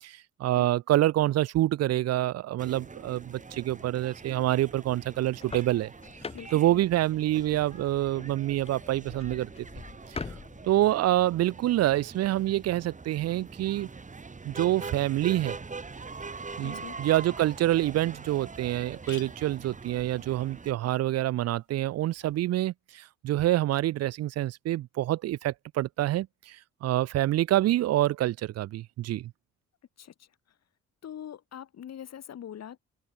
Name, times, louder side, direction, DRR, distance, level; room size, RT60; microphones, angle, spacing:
voice 1, 0.0-5.9 6.5-9.7 10.7-13.9 14.4-15.6 16.6-26.6 26.8-29.3, right 14 dB, 55° right, 0.4 m, -27 dB
sound 1, 2.6-20.7, right 4 dB, 25° right, 2.4 m, -44 dB
sound 2, 5.2-10.9, left 4 dB, 20° left, 0.7 m, -44 dB
voice 2, 6.3-6.9 16.6-17.0 30.0-30.3 31.0-32.8, left 9 dB, 60° left, 2.3 m, -43 dB
sound 3, 18.8-22.5, left 12 dB, 75° left, 7.7 m, -55 dB
open air
cardioid pair, 90°, 30 cm